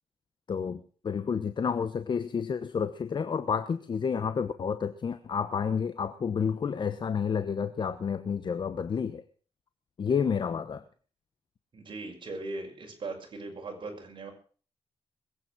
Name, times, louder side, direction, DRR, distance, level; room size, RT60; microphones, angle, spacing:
voice 1, 0.5-9.2 10.0-10.8, left 6 dB, 50° left, 11 dB, 1.0 m, -30 dB
voice 2, 11.7-14.3, right 3 dB, 55° right, 2 dB, 6.0 m, -39 dB
21.0 x 9.2 x 6.2 m, 0.42 s
cardioid pair, 95°, 10 cm